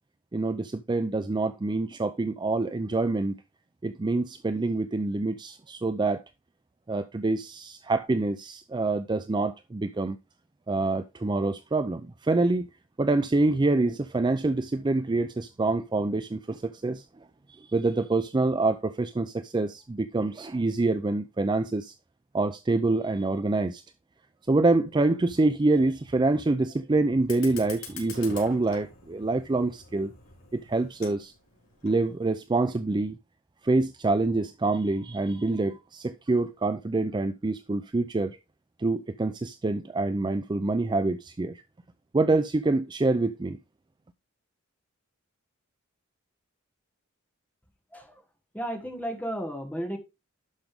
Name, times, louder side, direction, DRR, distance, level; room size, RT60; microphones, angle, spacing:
voice 1, 0.3-3.4 3.8-6.2 6.9-10.2 10.7-12.7 13.0-17.0 17.5-21.9 22.3-23.8 24.5-30.1 30.5-31.3 31.8-33.2 33.6-38.4 38.8-41.6 42.1-43.6, right 2 dB, 20° right, 0.4 m, -26 dB
Fire, 27.2-32.2, left 5 dB, 85° left, 4.5 m, -46 dB
voice 2, 47.9-48.2 48.5-50.0, equal, 5° left, 1.6 m, -33 dB
12.0 x 5.2 x 3.5 m
head